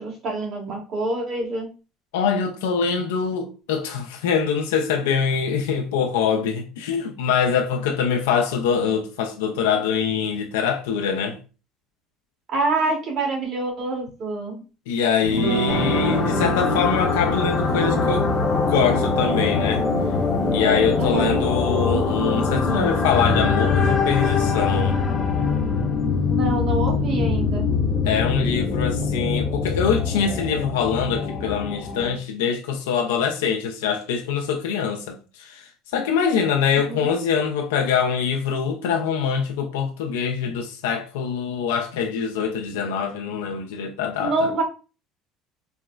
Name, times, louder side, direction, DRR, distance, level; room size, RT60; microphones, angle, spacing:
voice 1, 0.0-1.7 12.5-14.6 21.0-21.3 26.3-27.7 36.9-37.1 44.2-44.6, right 3 dB, 50° right, 1.4 m, -26 dB
voice 2, 2.1-11.4 14.9-18.3 18.7-19.9 20.5-25.0 28.0-44.5, left 6 dB, 90° left, 0.3 m, -24 dB
sound 1, 15.2-23.0, right 3 dB, 80° right, 0.8 m, -30 dB
sound 2, 15.7-32.1, left 4 dB, 30° left, 0.6 m, -23 dB
3.9 x 2.0 x 2.2 m
supercardioid pair, 95°, 0 cm